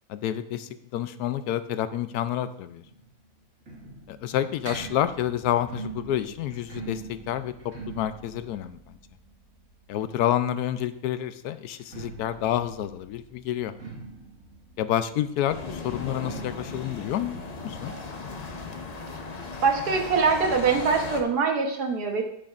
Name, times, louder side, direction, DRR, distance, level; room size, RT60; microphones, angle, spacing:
voice 1, 0.1-2.8 4.1-7.5 8.0-8.8 9.9-13.7 14.8-17.9, left 11 dB, 70° left, 12 dB, 1.0 m, -29 dB
sound 1, 2.8-10.5 11.6-19.0 19.3-19.4 19.6-19.7 20.4-20.5, right 4 dB, 50° right, 2.2 m, -43 dB
sound 2, 15.5-21.2, left 3 dB, 45° left, 0.5 m, -37 dB
voice 2, 19.6-22.2, right 5 dB, 65° right, 3 dB, 1.6 m, -23 dB
10.0 x 8.7 x 2.5 m, 0.75 s
omnidirectional pair, 1.8 m